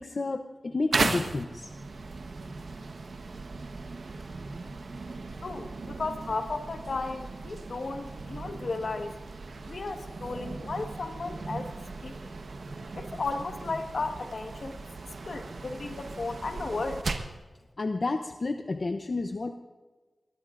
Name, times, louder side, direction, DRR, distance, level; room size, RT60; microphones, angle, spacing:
voice 1, 0.0-1.7 17.8-19.5, left 3 dB, 55° left, 6 dB, 0.7 m, -31 dB
sound 1, 0.9-17.4, right 3 dB, 75° right, 1.1 m, -37 dB
voice 2, 5.4-9.1 9.6-11.7 12.0-12.3 12.9-14.8 15.2-17.0, left 3 dB, 70° left, 5 dB, 1.5 m, -34 dB
23.0 x 20.5 x 2.6 m, 1.3 s
wide cardioid pair, 75°, 0 cm